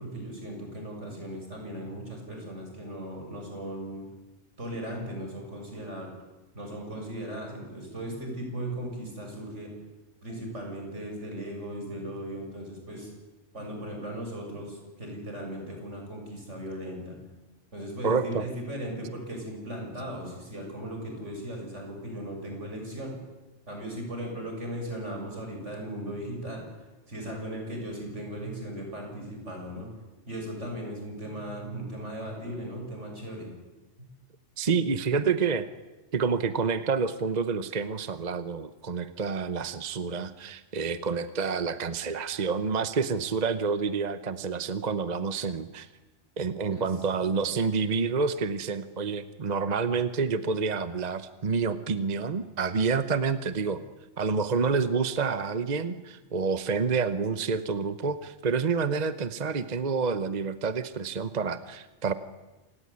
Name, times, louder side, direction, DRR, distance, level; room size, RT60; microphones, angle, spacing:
voice 1, 0.0-4.0 4.6-6.1 6.5-9.7 10.2-13.1 13.5-17.2 17.7-23.2 23.7-26.7 27.1-29.9 30.3-33.5 34.7-34.9 46.7-46.9, right 1 dB, 80° right, 2 dB, 7.5 m, -37 dB
voice 2, 18.0-18.5 34.6-35.7 36.1-45.9 46.4-53.8 54.2-62.1, right 5 dB, 40° right, 11 dB, 1.0 m, -28 dB
27.5 x 18.0 x 9.8 m, 1.1 s
omnidirectional pair, 1.2 m